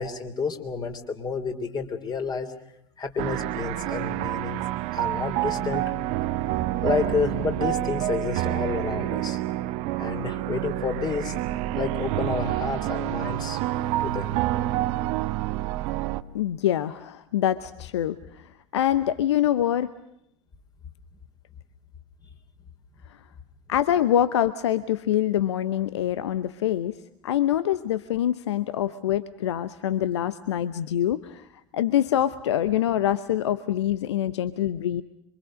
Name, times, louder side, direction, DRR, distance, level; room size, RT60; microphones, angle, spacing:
voice 1, 0.0-2.5 3.0-4.6 4.9-5.9 6.8-9.4 10.0-11.4 11.7-13.6 14.0-14.4, left 5 dB, 25° left, 6 dB, 3.4 m, -30 dB
sound 1, 3.2-16.2, right 15 dB, 50° right, 1.0 m, -28 dB
voice 2, 16.3-19.9 23.1-23.2 23.7-27.0 27.2-31.5 31.7-35.0, left 11 dB, 70° left, 14 dB, 0.8 m, -25 dB
27.0 x 24.5 x 6.4 m, 0.78 s
figure-of-eight pair, 80°, 15 cm